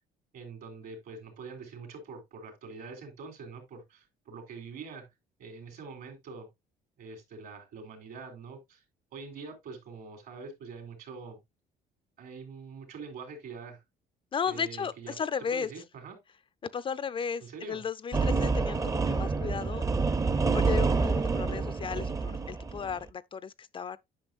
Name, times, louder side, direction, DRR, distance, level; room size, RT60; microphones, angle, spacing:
voice 1, 0.3-5.0 5.4-6.5 7.0-8.8 9.1-11.4 12.2-13.8 14.5-15.2 15.5-16.2 17.4-17.8, right 4 dB, 70° right, 3.0 m, -44 dB
voice 2, 14.3-15.7 16.6-19.8 20.5-24.0, left 6 dB, 30° left, 0.4 m, -35 dB
sound 1, 18.1-23.0, right 4 dB, 20° right, 0.5 m, -28 dB
8.8 x 5.7 x 2.4 m
cardioid pair, 110°, 17 cm